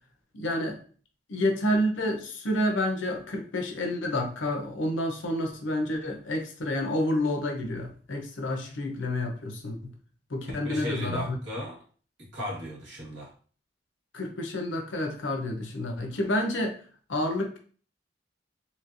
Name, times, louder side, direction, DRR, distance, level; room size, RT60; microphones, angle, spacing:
voice 1, 0.3-0.8 1.3-9.9 10.3-11.4 14.1-16.8 17.1-17.6, left 1 dB, 85° left, 3 dB, 0.7 m, -29 dB
voice 2, 10.5-11.8 12.2-13.3, equal, 70° right, -4 dB, 1.6 m, -36 dB
3.1 x 2.8 x 2.5 m, 0.43 s
head